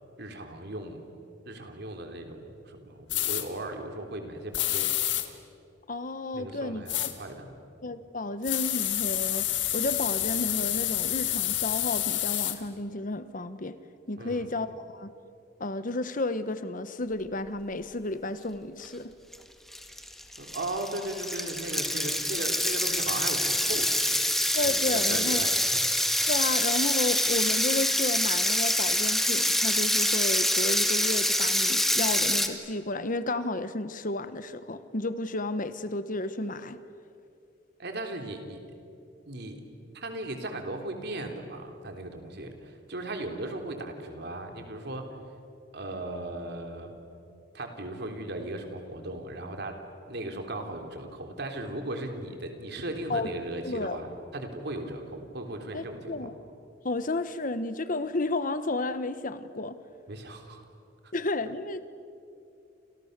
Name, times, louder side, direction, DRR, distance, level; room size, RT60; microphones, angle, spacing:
voice 1, 0.2-1.0 1.5-5.1 6.3-7.5 14.2-14.5 20.4-24.2 24.6-25.8 37.8-38.6 39.3-39.6 39.9-45.1 45.7-46.9 47.5-49.8 50.1-56.1 60.1-60.6, right 1 dB, 65° right, 4 dB, 3.5 m, -37 dB
sound 1, 3.1-3.4 4.5-5.2 6.9-7.1 8.4-12.5, left 13 dB, 80° left, 2.1 m, -28 dB
voice 2, 5.9-7.1 7.8-9.5 9.7-13.8 14.1-15.1 15.6-19.1 24.5-25.4 26.3-36.8 53.1-53.3 53.6-54.0 55.7-56.3 56.8-59.8 61.1-61.9, left 2 dB, 45° left, 12 dB, 1.2 m, -32 dB
sound 2, 19.3-19.4 19.7-32.5, left 1 dB, ahead, 1.8 m, -26 dB
29.5 x 28.0 x 6.8 m, 2.6 s
head